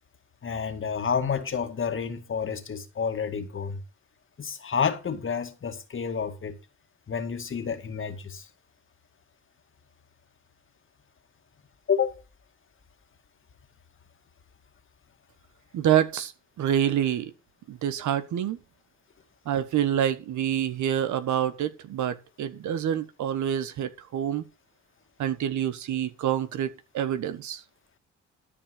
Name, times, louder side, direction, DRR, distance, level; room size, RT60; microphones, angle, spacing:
voice 1, 0.4-3.8 4.4-6.6 7.1-8.4 11.9-12.1, left 6 dB, 40° left, 2.1 m, -29 dB
voice 2, 15.7-16.3 16.6-17.3 17.7-18.6 19.4-24.4 25.2-27.6, right 10 dB, 75° right, 1.5 m, -27 dB
13.0 x 5.2 x 6.7 m
cardioid pair, 90°, 30 cm